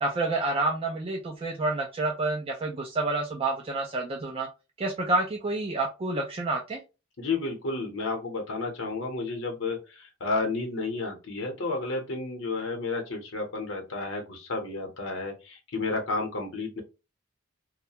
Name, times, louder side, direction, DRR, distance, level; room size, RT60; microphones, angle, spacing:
voice 1, 0.0-4.5 4.8-6.8, right 2 dB, 25° right, 1 dB, 0.3 m, -28 dB
voice 2, 7.2-16.8, left 3 dB, 70° left, 2 dB, 0.7 m, -31 dB
2.3 x 2.1 x 2.8 m, 0.29 s
head